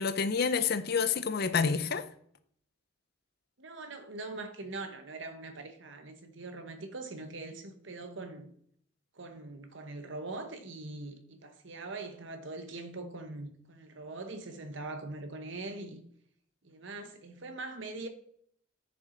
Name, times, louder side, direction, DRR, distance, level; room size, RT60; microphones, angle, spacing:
voice 1, 0.0-2.0, left 5 dB, 50° left, 0.6 m, -28 dB
voice 2, 3.6-8.5 9.1-16.0 16.6-18.1, right 2 dB, 65° right, 1.2 m, -42 dB
9.1 x 7.0 x 4.0 m
head